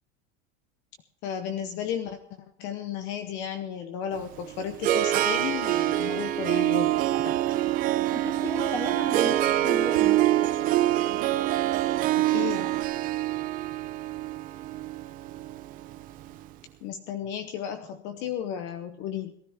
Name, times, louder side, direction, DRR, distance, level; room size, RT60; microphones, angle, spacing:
voice 1, 1.2-2.2 2.6-7.4 12.2-12.8 16.8-19.3, left 9 dB, 35° left, 8 dB, 0.9 m, -34 dB
Harp, 4.2-16.3, right 14 dB, 25° right, 0.6 m, -25 dB
sound 1, 6.8-12.8, right 13 dB, 60° right, 1.2 m, -40 dB
voice 2, 8.1-10.3, left 2 dB, 5° left, 6 dB, 1.5 m, -35 dB
18.5 x 13.5 x 3.6 m, 0.74 s
supercardioid pair, 180°, 32 cm